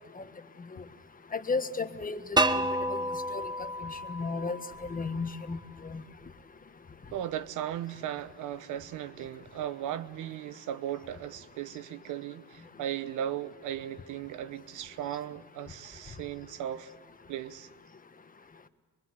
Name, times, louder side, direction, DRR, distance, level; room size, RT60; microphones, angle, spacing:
voice 1, 1.3-2.4 3.3-4.6 4.9-5.6 5.9-6.0, left 4 dB, 25° left, 1.5 m, -33 dB
sound 1, 2.4-5.3, right 1 dB, 15° right, 1.2 m, -30 dB
voice 2, 7.1-16.9 17.3-17.7, right 11 dB, 90° right, 1.0 m, -37 dB
24.0 x 23.0 x 8.1 m
cardioid pair, 90°, 30 cm